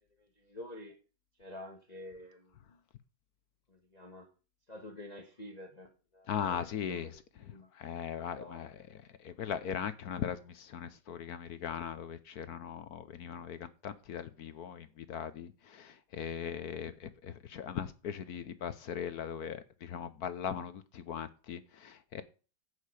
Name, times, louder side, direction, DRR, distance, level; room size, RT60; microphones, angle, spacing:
voice 1, 0.2-0.9 1.4-2.8 3.7-4.3 4.7-7.7 8.2-8.7, left 1 dB, 25° left, 1.5 m, -49 dB
voice 2, 6.3-7.2 7.7-8.8 9.2-22.2, left 8 dB, 60° left, 1.2 m, -39 dB
11.0 x 8.5 x 4.9 m
omnidirectional pair, 2.0 m